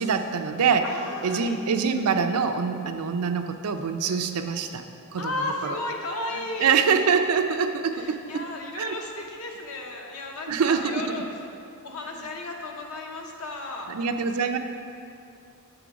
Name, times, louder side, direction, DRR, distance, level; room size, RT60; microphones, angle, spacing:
voice 1, 0.0-0.9 1.2-4.8 5.1-5.3 5.6-5.8 6.6-8.5 8.7-9.0 10.5-11.3 13.9-14.6, right 6 dB, 85° right, 7 dB, 0.5 m, -25 dB
voice 2, 0.8-1.6 5.2-6.7 7.9-11.3 11.8-13.9, left 2 dB, 70° left, 1 dB, 1.0 m, -34 dB
7.6 x 4.9 x 5.0 m, 2.5 s
head